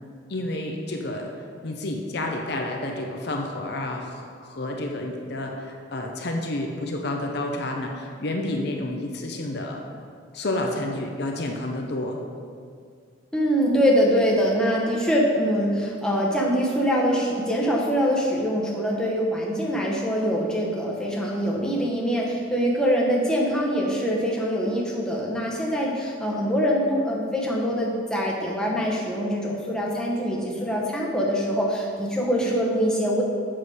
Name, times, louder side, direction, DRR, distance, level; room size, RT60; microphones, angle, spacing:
voice 1, 0.3-1.3 1.6-9.8 10.3-12.2, left 1 dB, 50° left, 1 dB, 0.7 m, -30 dB
voice 2, 13.3-33.2, equal, 5° left, -4 dB, 0.9 m, -24 dB
7.5 x 6.3 x 4.9 m, 2.2 s
head